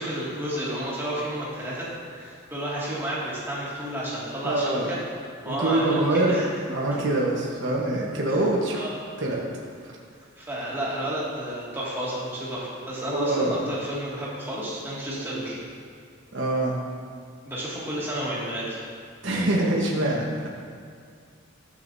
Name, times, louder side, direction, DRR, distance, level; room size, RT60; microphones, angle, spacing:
voice 1, 0.0-5.0 5.4-6.5 8.7-9.0 10.4-15.6 17.5-18.8, right 1 dB, 10° right, -8 dB, 2.1 m, -31 dB
voice 2, 4.4-4.9 5.4-6.4 6.7-8.8 9.2-9.4 13.1-13.6 15.1-15.3 16.3-16.8 19.2-20.5, right 2 dB, 60° right, -3 dB, 1.2 m, -25 dB
12.5 x 7.9 x 2.7 m, 2.2 s
head